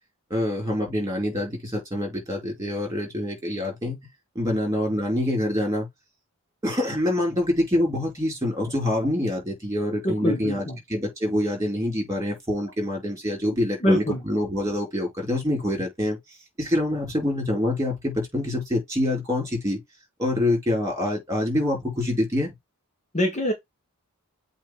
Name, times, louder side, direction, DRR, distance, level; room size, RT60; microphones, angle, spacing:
voice 1, 0.3-4.0 4.3-5.9 6.6-19.8 20.2-22.5, left 1 dB, 15° right, 4.9 m, -26 dB
voice 2, 10.0-10.8 13.8-14.2 23.1-23.5, left 1 dB, 30° left, 1.5 m, -23 dB
8.1 x 2.9 x 4.8 m
head